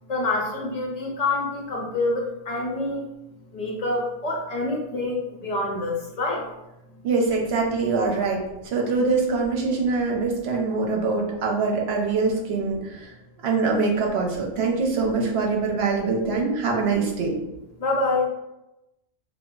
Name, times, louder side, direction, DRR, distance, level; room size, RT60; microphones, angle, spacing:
voice 1, 0.0-3.0 3.5-6.5 6.9-7.0 17.8-18.3, left 2 dB, 45° left, -2 dB, 0.6 m, -26 dB
voice 2, 7.0-13.1 13.4-17.3, right 4 dB, 75° right, 1 dB, 0.8 m, -24 dB
2.1 x 2.0 x 3.6 m, 0.93 s
omnidirectional pair, 1.1 m